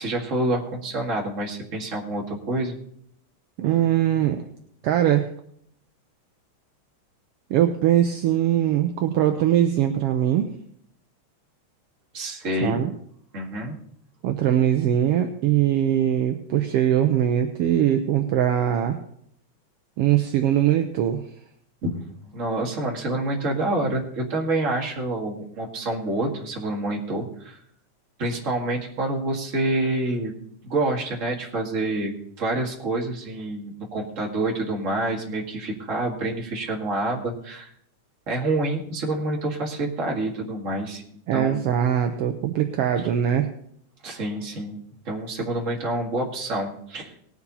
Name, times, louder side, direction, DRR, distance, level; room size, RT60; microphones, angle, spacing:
voice 1, 0.0-2.8 12.1-12.8 13.3-13.8 21.8-21.9 22.2-27.6 28.2-30.3 30.6-37.7 38.3-41.0 41.3-41.6 44.0-44.8 45.1-47.2, right 2 dB, 30° right, 0 dB, 1.8 m, -27 dB
voice 2, 3.6-4.5 4.8-5.3 7.5-10.5 12.6-12.9 14.2-19.0 20.0-21.2 41.3-43.5, right 11 dB, 75° right, 6 dB, 1.4 m, -21 dB
19.0 x 7.2 x 4.1 m, 0.68 s
omnidirectional pair, 3.4 m